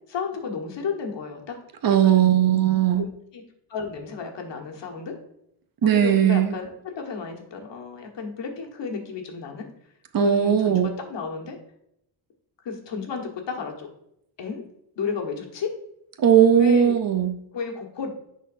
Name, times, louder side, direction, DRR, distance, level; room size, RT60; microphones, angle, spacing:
voice 1, 0.1-1.6 1.9-2.3 2.9-3.4 3.7-5.2 5.8-9.7 10.2-11.6 12.6-13.9 14.4-14.6 15.0-15.7 16.5-16.9 17.5-18.1, left 5 dB, 70° left, 2 dB, 1.5 m, -32 dB
voice 2, 1.8-3.1 5.8-6.5 10.1-10.9 16.2-17.4, right 9 dB, 50° right, 9 dB, 0.7 m, -18 dB
10.0 x 4.0 x 2.6 m, 0.77 s
wide cardioid pair, 130°, 46 cm